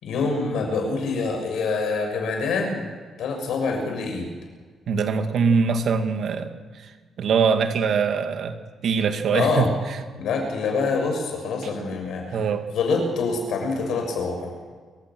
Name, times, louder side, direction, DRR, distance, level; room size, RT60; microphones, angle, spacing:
voice 1, 0.0-2.8 3.2-4.3 9.3-9.7 10.2-12.4 12.7-14.5, left 4 dB, 75° left, 2 dB, 6.9 m, -25 dB
voice 2, 4.9-6.9 7.2-10.0 12.3-12.7, right 5 dB, 65° right, 6 dB, 2.3 m, -23 dB
28.5 x 16.0 x 6.3 m, 1.5 s
cardioid pair, 90°, 0 cm